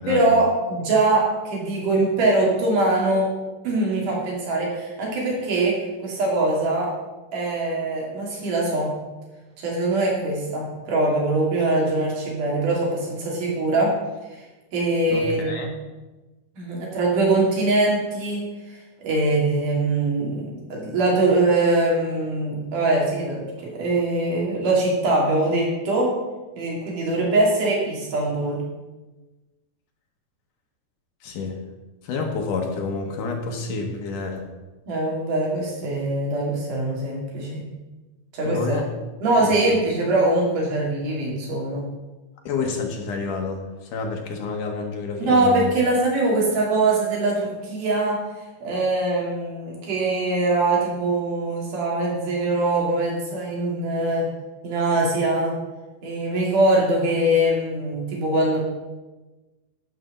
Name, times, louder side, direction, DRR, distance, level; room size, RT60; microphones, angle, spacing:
voice 1, 0.1-3.3 3.6-6.9 7.3-8.9 9.6-14.0 14.7-15.7 16.6-26.1 26.6-28.6 34.9-37.6 38.3-38.8 39.2-41.8 45.2-48.2 48.6-54.3 54.6-55.5 56.0-58.6, right 2 dB, 70° right, -3 dB, 4.1 m, -22 dB
voice 2, 15.1-15.7 31.2-31.6 32.0-34.5 38.4-38.9 39.4-39.8 42.5-43.6 43.9-45.7, left 4 dB, 75° left, 2 dB, 2.6 m, -29 dB
11.5 x 5.7 x 6.6 m, 1.1 s
omnidirectional pair, 3.8 m